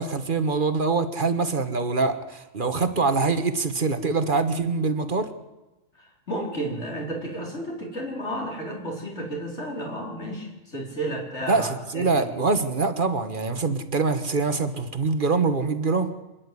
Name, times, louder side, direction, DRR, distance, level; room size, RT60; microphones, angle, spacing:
voice 1, 0.0-5.3 11.5-16.1, right 4 dB, 40° right, 9 dB, 1.4 m, -24 dB
voice 2, 6.0-12.3, right 1 dB, 55° left, -1 dB, 4.8 m, -32 dB
26.0 x 10.5 x 9.6 m, 1.1 s
omnidirectional pair, 1.4 m